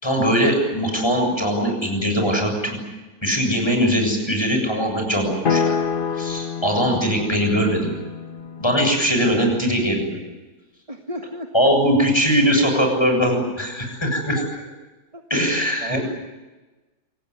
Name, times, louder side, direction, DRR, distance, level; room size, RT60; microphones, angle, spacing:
voice 1, 0.0-2.8 3.2-5.7 6.1-8.0 8.6-10.2 11.5-14.4 15.3-16.0, equal, 15° left, 3 dB, 7.3 m, -21 dB
sound 1, 5.4-9.6, left 6 dB, 40° left, 1.0 m, -27 dB
voice 2, 10.9-11.5 15.1-15.2 15.8-16.3, right 1 dB, 20° right, 4 dB, 1.7 m, -32 dB
27.5 x 19.0 x 9.7 m, 1.2 s
omnidirectional pair, 1.7 m